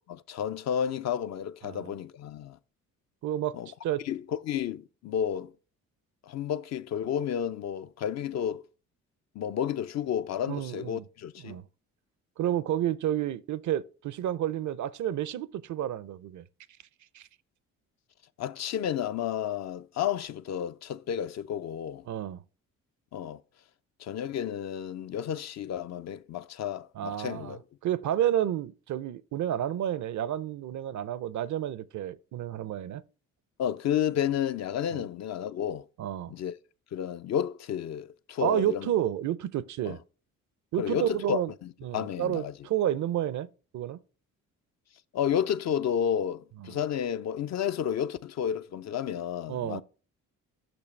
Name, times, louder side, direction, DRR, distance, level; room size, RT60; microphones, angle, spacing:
voice 1, 0.1-2.6 3.5-3.7 4.0-5.5 6.2-8.6 9.4-11.6 18.4-22.0 23.1-23.4 24.0-27.6 33.6-35.8 36.3-36.5 36.9-38.9 39.9-40.0 40.8-42.5 45.1-49.8, left 9 dB, 50° left, 0.4 m, -31 dB
voice 2, 3.2-3.6 3.8-4.0 10.5-11.0 11.4-11.6 12.4-16.4 17.1-17.3 22.1-22.4 27.0-27.6 27.8-33.0 34.9-35.0 36.0-36.3 38.4-40.0 40.7-41.5 41.8-43.5 43.7-44.0 46.6-46.7 49.5-49.8, right 11 dB, 55° right, 0.5 m, -30 dB
6.0 x 6.0 x 3.2 m
supercardioid pair, 55°, 36 cm